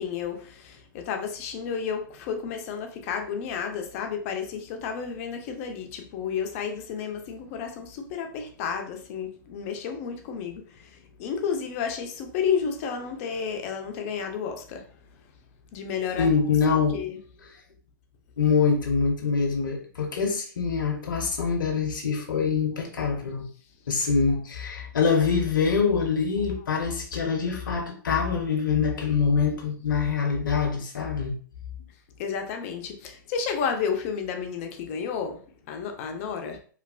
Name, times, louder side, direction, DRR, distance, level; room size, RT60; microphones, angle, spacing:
voice 1, 0.0-14.9 15.7-16.3 16.9-17.2 32.2-36.6, left 6 dB, 45° left, 0.5 m, -31 dB
voice 2, 16.2-17.0 18.4-23.5 23.9-31.4, left 5 dB, 85° left, 0.7 m, -24 dB
3.2 x 2.3 x 2.3 m
hypercardioid pair, 130°, 11 cm